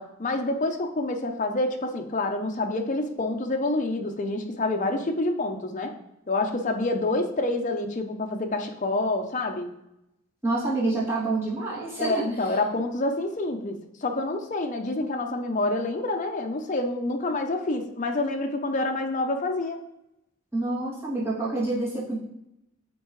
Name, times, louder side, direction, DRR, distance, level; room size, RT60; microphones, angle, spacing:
voice 1, 0.0-5.9 6.3-9.7 12.0-19.8, left 2 dB, 35° left, 4 dB, 0.6 m, -27 dB
voice 2, 10.4-12.2 20.5-22.2, right 2 dB, 10° right, -10 dB, 2.3 m, -27 dB
8.7 x 3.7 x 3.1 m, 0.87 s
head